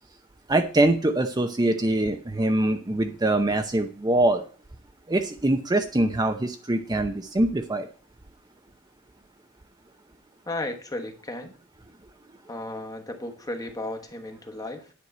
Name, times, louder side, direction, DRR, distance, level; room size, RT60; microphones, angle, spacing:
voice 1, 0.5-4.4 5.1-7.9, right 1 dB, 20° right, 6 dB, 0.7 m, -23 dB
voice 2, 10.4-11.5 12.5-14.9, left 2 dB, 20° left, 5 dB, 1.2 m, -34 dB
9.8 x 4.7 x 7.9 m, 0.39 s
head